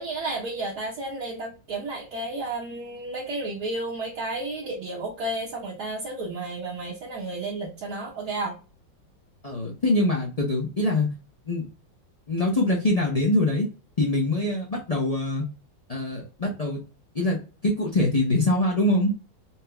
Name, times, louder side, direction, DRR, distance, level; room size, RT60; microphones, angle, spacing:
voice 1, 0.0-8.5, right 2 dB, 60° right, -5 dB, 1.5 m, -32 dB
voice 2, 9.4-11.1 11.5-11.6 12.3-13.7 14.0-15.4 15.9-16.8 17.1-19.1, left 1 dB, 40° left, -1 dB, 0.5 m, -24 dB
4.4 x 2.9 x 2.2 m, 0.32 s
omnidirectional pair, 2.0 m